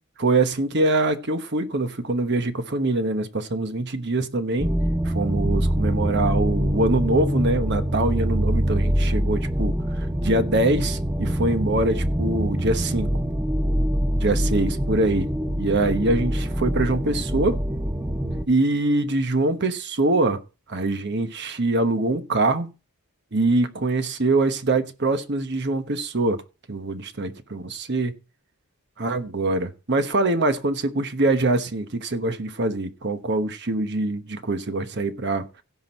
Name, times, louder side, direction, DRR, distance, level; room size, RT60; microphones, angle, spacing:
voice 1, 0.2-4.7 5.0-13.1 14.2-15.3 15.6-17.6 18.5-20.4 20.7-22.7 23.3-26.4 26.7-28.1 29.0-35.4, right 2 dB, 50° right, 1.1 m, -24 dB
sound 1, 4.6-18.4, equal, 10° right, 0.6 m, -24 dB
16.5 x 6.1 x 4.3 m
head